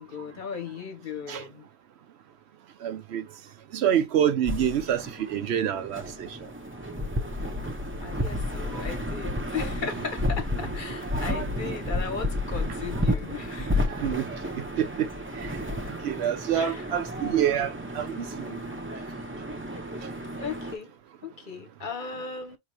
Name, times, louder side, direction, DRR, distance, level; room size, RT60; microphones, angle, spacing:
voice 1, 0.0-1.7 7.6-7.7 8.0-14.0 16.5-16.9 20.4-20.9 21.2-22.6, left 6 dB, 50° left, 0.9 m, -37 dB
voice 2, 2.8-3.2 3.7-6.3 8.7-8.8 11.3-11.4 11.6-11.7 13.9-14.3 14.5-15.1 15.4-15.5 16.0-18.6, right 9 dB, 75° right, 0.9 m, -27 dB
sound 1, 4.4-20.8, left 1 dB, 15° right, 0.6 m, -32 dB
4.8 x 2.8 x 2.8 m
omnidirectional pair, 1.1 m